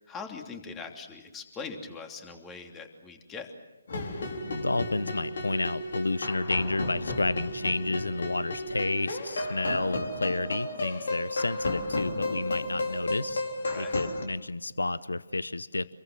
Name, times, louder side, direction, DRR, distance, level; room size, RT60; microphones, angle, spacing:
voice 1, 0.1-3.5 13.7-14.0, left 5 dB, 15° left, 4 dB, 3.0 m, -41 dB
sound 1, 3.9-14.2, left 2 dB, 60° left, 4.2 m, -33 dB
voice 2, 4.5-13.4 13.8-15.9, left 2 dB, 80° left, 17 dB, 0.8 m, -30 dB
28.0 x 22.5 x 7.5 m, 1.1 s
figure-of-eight pair, 140°, 0 cm